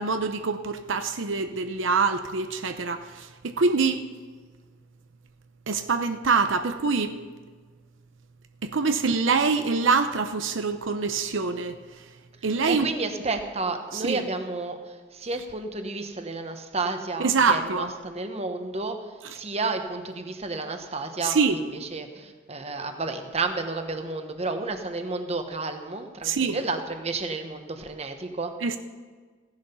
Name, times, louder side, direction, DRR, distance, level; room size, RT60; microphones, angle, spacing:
voice 1, 0.0-4.1 5.7-7.2 8.6-11.8 12.4-12.9 13.9-14.2 17.2-17.9 21.2-21.6 26.2-26.6 28.6-28.8, right 4 dB, 80° right, 8 dB, 0.7 m, -25 dB
voice 2, 12.6-19.0 19.3-28.5, right 3 dB, 35° right, 6 dB, 1.1 m, -31 dB
15.5 x 10.5 x 5.6 m, 1.5 s
head